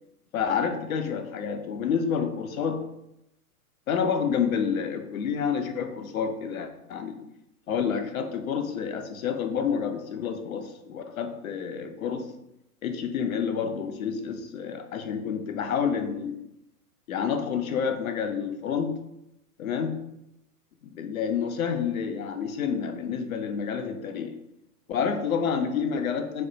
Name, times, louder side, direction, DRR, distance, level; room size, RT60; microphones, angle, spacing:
voice 1, 0.3-2.9 3.9-7.2 7.7-12.3 12.8-16.4 17.1-19.0 19.6-20.0 20.8-24.3 24.9-26.4, left 7 dB, 65° left, 6 dB, 0.5 m, -29 dB
2.3 x 2.1 x 3.8 m, 0.84 s
figure-of-eight pair, 105°, 45 cm